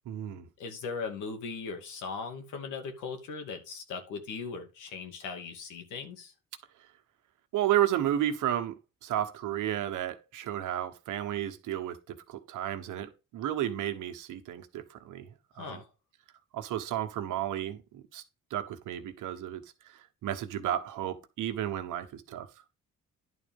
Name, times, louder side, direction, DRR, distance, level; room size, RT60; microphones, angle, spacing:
voice 1, 0.0-0.5 7.5-8.8 9.0-15.8 16.5-18.2 18.5-22.5, right 11 dB, 85° right, 1.4 m, -32 dB
voice 2, 0.6-6.3 15.6-15.9, left 5 dB, 90° left, 2.5 m, -39 dB
11.0 x 4.1 x 5.4 m
cardioid pair, 90°, 30 cm